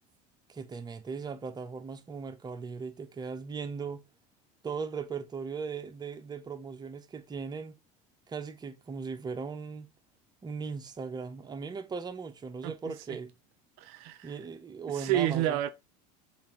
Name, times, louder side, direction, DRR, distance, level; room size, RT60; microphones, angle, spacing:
voice 1, 0.5-4.0 4.6-7.8 8.3-9.9 10.4-13.3 14.2-15.6, right 5 dB, 20° right, 0.7 m, -38 dB
voice 2, 13.8-14.3 14.9-15.7, right 13 dB, 70° right, 0.5 m, -29 dB
6.7 x 2.6 x 2.9 m
supercardioid pair, 95°, 20 cm